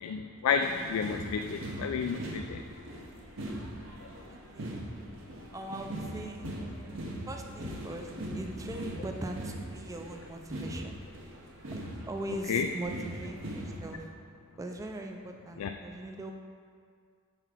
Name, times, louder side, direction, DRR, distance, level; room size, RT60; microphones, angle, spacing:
voice 1, 0.0-2.6 12.5-12.7 15.6-15.7, left 6 dB, 90° left, 5 dB, 0.3 m, -31 dB
sound 1, 0.6-13.9, right 1 dB, 65° right, 0.9 m, -41 dB
voice 2, 4.3-4.9 5.5-6.5 7.3-10.9 12.1-14.1 14.6-16.3, right 1 dB, 15° right, 3 dB, 0.4 m, -40 dB
5.8 x 4.5 x 5.9 m, 2.1 s
head